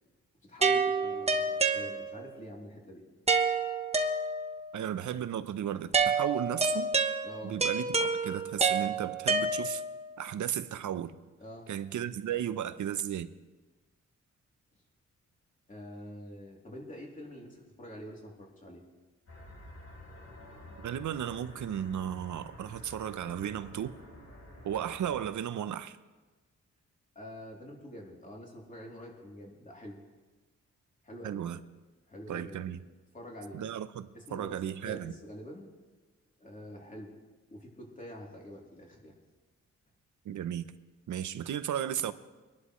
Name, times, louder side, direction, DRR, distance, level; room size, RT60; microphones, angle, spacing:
voice 1, 0.4-3.0 7.2-7.6 11.4-11.7 15.7-18.8 27.1-30.0 31.0-31.4 32.1-32.6 33.1-33.6 34.1-35.7 36.4-37.1 37.5-39.2, equal, 25° left, 3.2 m, -46 dB
sound 1, 0.6-2.4 3.3-4.7 5.9-10.0, right 4 dB, 20° right, 1.1 m, -29 dB
voice 2, 4.7-6.9 7.4-9.8 10.2-11.2 11.7-13.3 20.8-24.0 24.6-26.0 31.2-31.6 32.3-32.8 33.5-35.1 40.2-40.7 41.1-42.1, right 10 dB, 80° right, 0.7 m, -34 dB
sound 2, 19.3-25.3, left 1 dB, 60° left, 4.7 m, -50 dB
23.5 x 11.5 x 3.2 m
cardioid pair, 110°, 30 cm